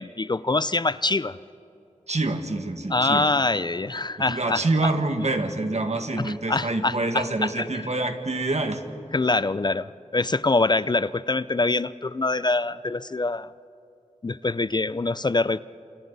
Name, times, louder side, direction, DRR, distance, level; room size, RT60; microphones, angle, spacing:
voice 1, 0.0-1.4 2.9-4.9 6.2-7.8 9.1-13.5 14.2-15.6, left 3 dB, 35° left, 17 dB, 0.4 m, -25 dB
voice 2, 2.1-3.3 4.3-8.8, right 2 dB, 60° right, 6 dB, 1.8 m, -26 dB
30.0 x 28.0 x 4.1 m, 2.9 s
wide cardioid pair, 60°, 13 cm